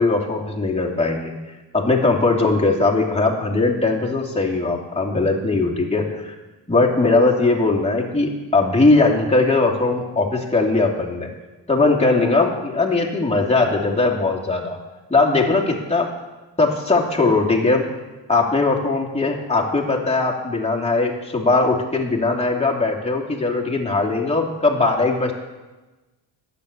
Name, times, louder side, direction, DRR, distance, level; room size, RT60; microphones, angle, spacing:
voice 1, 0.0-1.4 1.7-6.3 6.7-11.3 11.7-14.8 15.1-16.1 16.6-17.8 18.3-25.3, left 3 dB, 15° left, -2 dB, 2.8 m, -19 dB
10.5 x 8.2 x 8.3 m, 1.1 s
cardioid pair, 70°, 44 cm